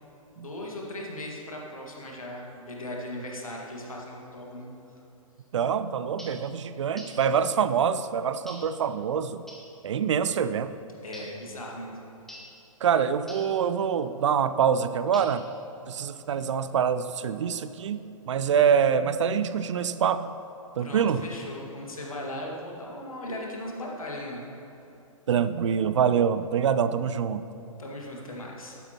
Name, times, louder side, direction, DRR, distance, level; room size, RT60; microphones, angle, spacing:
voice 1, 0.4-4.7 11.0-12.0 20.8-24.5 27.8-28.8, left 1 dB, 75° left, -2 dB, 2.0 m, -38 dB
voice 2, 5.5-9.5 9.8-10.7 12.8-15.5 15.9-20.4 20.8-21.2 25.3-27.4, right 7 dB, 60° right, 13 dB, 0.5 m, -25 dB
sound 1, 6.2-6.5 7.0-7.3 8.5-8.8 9.5-9.7 11.1-11.4 12.3-12.6 13.3-13.6 15.1-15.6, equal, ahead, 1.1 m, -46 dB
12.5 x 10.0 x 3.0 m, 2.9 s
figure-of-eight pair, 115°, 18 cm